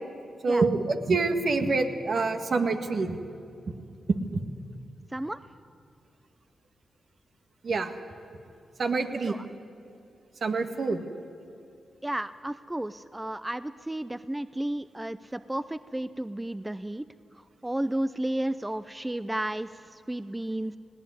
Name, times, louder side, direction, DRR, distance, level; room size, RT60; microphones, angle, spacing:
voice 1, 0.4-3.2 4.3-4.4 7.6-8.0 8.8-9.3 10.4-11.1, right 3 dB, 60° right, 6 dB, 1.7 m, -26 dB
voice 2, 12.0-17.1 17.3-20.8, right 1 dB, 15° right, 14 dB, 0.6 m, -33 dB
19.5 x 16.5 x 9.6 m, 2.5 s
supercardioid pair, 45°, 0 cm